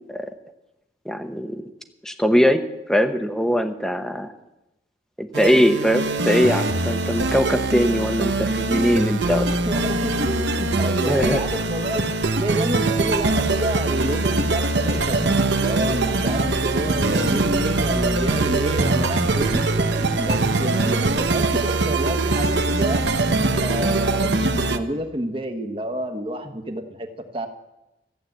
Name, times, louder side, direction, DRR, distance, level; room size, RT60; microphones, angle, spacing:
voice 1, 1.0-1.6 2.0-2.6 2.9-4.3 5.2-9.5 11.0-11.4, equal, 5° left, 7 dB, 0.9 m, -21 dB
sound 1, 5.3-24.8, right 2 dB, 90° right, 1.0 m, -22 dB
voice 2, 9.6-12.0 12.4-23.0 23.6-27.1 27.3-27.5, right 1 dB, 30° right, 6 dB, 1.2 m, -29 dB
14.5 x 8.6 x 8.0 m, 0.97 s
head